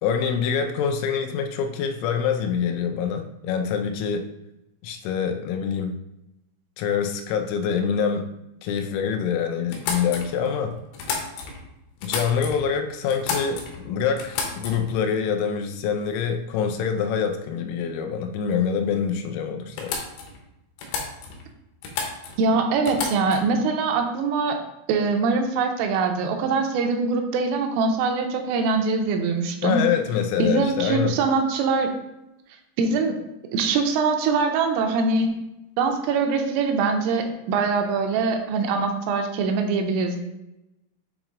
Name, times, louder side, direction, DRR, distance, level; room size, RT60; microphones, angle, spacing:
voice 1, 0.0-4.3 4.8-6.0 6.8-8.3 8.6-10.8 12.0-20.0 29.6-31.2, left 7 dB, 90° left, 5 dB, 3.3 m, -25 dB
sound 1, 9.7-11.6 12.0-12.7 13.1-13.8 14.2-15.0 16.0-16.2 16.5-17.0 18.9-19.0 19.3-19.4 19.8-20.4 20.8-21.5 21.8-22.4 22.9-23.5, left 5 dB, 75° left, 2.6 m, -32 dB
voice 2, 22.4-24.6 24.9-29.8 30.4-31.9 32.8-33.2 33.5-35.3 35.8-40.2, right 4 dB, 85° right, 4 dB, 3.2 m, -23 dB
8.7 x 3.0 x 3.7 m, 0.90 s
omnidirectional pair, 5.7 m